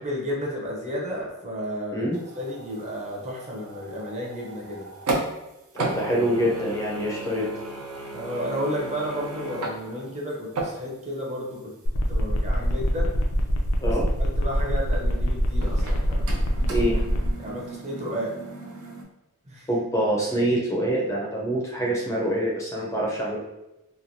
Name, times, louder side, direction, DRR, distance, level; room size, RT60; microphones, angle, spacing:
voice 1, 0.0-2.1 2.4-4.9 8.1-11.8 12.1-13.2 13.8-16.3 17.4-18.3 19.4-19.7, equal, 30° right, -2 dB, 0.6 m, -32 dB
sound 1, 2.1-5.5 5.8-11.3 11.6-11.7 15.6-19.0, right 2 dB, 80° right, 0.5 m, -35 dB
voice 2, 5.8-7.5 13.8-14.1 16.7-17.0 19.7-23.4, right 1 dB, 15° left, -4 dB, 0.4 m, -25 dB
sound 2, 11.9-17.3, equal, 80° left, 0.5 m, -26 dB
3.0 x 2.2 x 2.6 m, 0.93 s
head